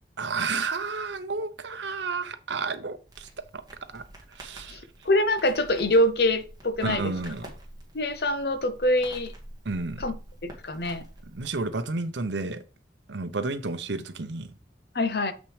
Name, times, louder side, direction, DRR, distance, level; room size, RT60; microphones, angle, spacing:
voice 1, 0.2-3.3 3.5-3.6 3.9-4.9 6.8-7.5 9.6-10.0 11.3-12.6 13.1-14.5, right 3 dB, 75° right, 0.7 m, -31 dB
Crackle, 3.1-11.7, right 1 dB, 20° right, 1.7 m, -47 dB
voice 2, 5.0-7.1 7.9-9.3 10.0-10.1 10.6-11.0 14.9-15.3, left 1 dB, 60° left, 0.7 m, -24 dB
7.4 x 5.9 x 3.3 m
head